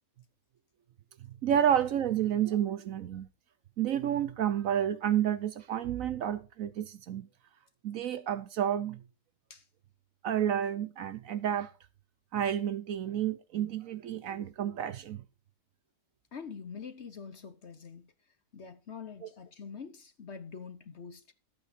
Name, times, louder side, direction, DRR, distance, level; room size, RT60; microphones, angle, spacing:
voice 1, 1.4-3.3 3.8-7.3 7.8-9.0 10.2-11.7 12.3-15.2, right 10 dB, 65° right, 1.0 m, -30 dB
voice 2, 16.3-18.1 18.5-21.2, left 6 dB, 50° left, 1.1 m, -45 dB
12.5 x 8.6 x 4.2 m
omnidirectional pair, 1.7 m